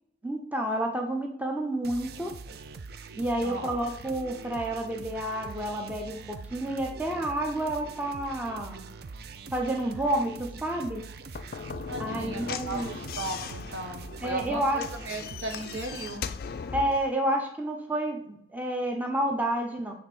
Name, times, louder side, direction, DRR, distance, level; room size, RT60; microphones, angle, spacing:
voice 1, 0.2-2.3 3.1-8.8 9.5-11.0 12.0-12.9 14.2-14.8 16.7-19.9, right 1 dB, 10° right, 1 dB, 0.7 m, -30 dB
sound 1, 1.8-16.2, right 4 dB, 55° right, 0.4 m, -43 dB
voice 2, 3.4-3.8 11.9-16.3, right 2 dB, 90° right, 4 dB, 1.2 m, -36 dB
Slam / Knock, 11.3-17.1, left 6 dB, 50° left, 0.3 m, -38 dB
7.9 x 3.4 x 4.5 m, 0.72 s
head